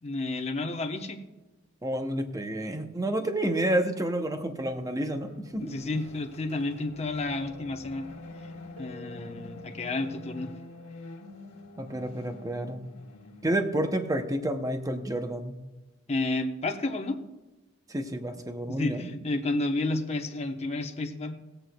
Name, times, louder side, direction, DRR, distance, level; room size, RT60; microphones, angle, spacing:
voice 1, 0.0-1.2 5.6-8.1 8.8-10.5 16.1-17.2 18.7-21.3, left 2 dB, 30° left, 4 dB, 0.9 m, -31 dB
voice 2, 1.8-5.7 11.8-12.9 13.4-15.6 17.9-19.1, right 1 dB, 15° right, 7 dB, 0.6 m, -30 dB
sound 1, 5.2-14.4, left 2 dB, 50° left, 1.8 m, -46 dB
Keyboard (musical), 8.8-10.8, left 2 dB, 80° right, 1.1 m, -50 dB
19.5 x 7.8 x 2.3 m, 1.1 s
head